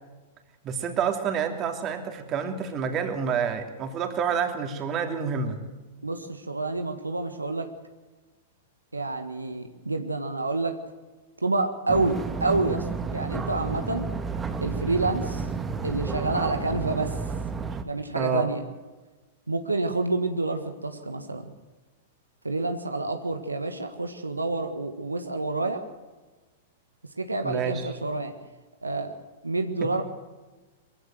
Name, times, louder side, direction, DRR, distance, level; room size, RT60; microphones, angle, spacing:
voice 1, 0.6-5.6 18.1-18.5 27.4-27.9, right 6 dB, 30° right, 5 dB, 3.0 m, -28 dB
voice 2, 6.0-7.7 8.9-10.8 11.4-14.1 14.6-15.4 15.8-17.2 17.8-18.6 19.5-21.4 22.4-25.8 27.2-28.3 28.8-29.1 29.4-30.0, right 3 dB, 90° right, 7 dB, 1.6 m, -28 dB
sound 1, 11.9-17.8, right 4 dB, 15° right, 1.7 m, -31 dB
22.5 x 16.0 x 7.9 m, 1.2 s
figure-of-eight pair, 100°, 0 cm